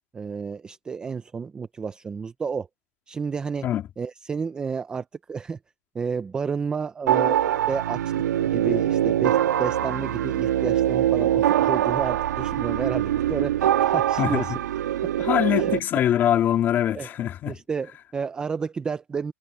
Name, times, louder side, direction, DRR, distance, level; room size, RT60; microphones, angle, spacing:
voice 1, 0.1-2.7 3.1-3.6 4.0-5.6 5.9-14.5 15.0-15.1 15.6-15.7 16.9-17.1 17.5-19.3, right 5 dB, 10° right, 0.5 m, -31 dB
sound 1, 7.1-15.8, right 11 dB, 85° right, 1.8 m, -23 dB
voice 2, 14.2-14.6 15.2-17.6, left 11 dB, 20° left, 2.7 m, -23 dB
supercardioid pair, 165°, 9 cm